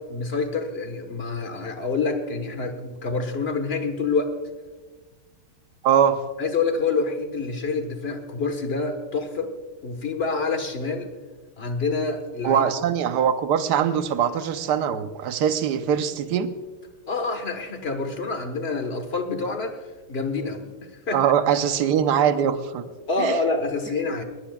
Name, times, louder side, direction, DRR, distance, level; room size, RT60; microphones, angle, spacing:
voice 1, 0.0-4.3 6.4-9.5 9.8-11.1 11.6-12.6 17.1-19.8 20.1-21.3 23.1-24.2, left 4 dB, 35° left, 7 dB, 1.3 m, -27 dB
voice 2, 5.8-6.2 12.4-16.5 21.1-22.8 23.2-23.4, right 8 dB, 60° right, 9 dB, 1.3 m, -22 dB
20.0 x 20.0 x 2.4 m, 1.4 s
omnidirectional pair, 2.3 m